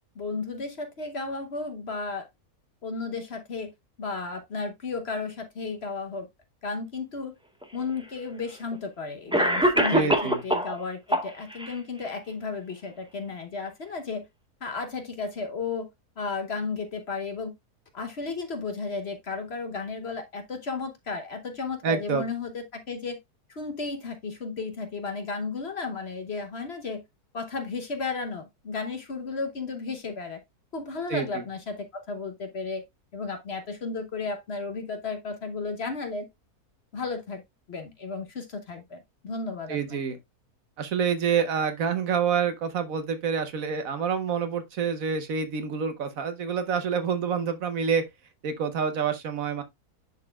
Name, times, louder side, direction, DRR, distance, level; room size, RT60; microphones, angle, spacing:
voice 1, 0.1-2.2 2.8-3.7 4.0-6.3 6.6-7.3 7.7-14.2 14.6-15.9 16.2-17.5 17.9-23.2 23.5-27.0 27.3-30.4 30.7-32.8 33.1-36.3 36.9-37.4 37.7-40.0, left 4 dB, 45° left, 1.1 m, -34 dB
Cough, 7.6-7.7 8.7-8.8 9.3-10.7 11.1-11.7, right 1 dB, 10° right, 0.3 m, -23 dB
voice 2, 9.9-10.4 21.8-22.2 31.1-31.4 39.7-40.2 40.8-48.1 48.4-49.6, right 6 dB, 65° right, 1.2 m, -27 dB
10.5 x 4.0 x 2.3 m
omnidirectional pair, 1.7 m